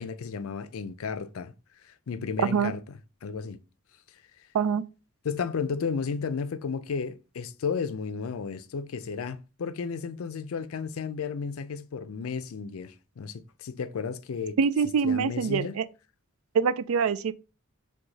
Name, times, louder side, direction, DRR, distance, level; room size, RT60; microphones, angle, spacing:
voice 1, 0.0-1.5 1.8-2.8 3.2-3.6 5.2-14.6 15.0-15.7, left 5 dB, 80° left, 0.4 m, -33 dB
voice 2, 14.6-15.8 16.5-17.3, right 6 dB, 80° right, 0.4 m, -24 dB
4.7 x 2.3 x 3.9 m
head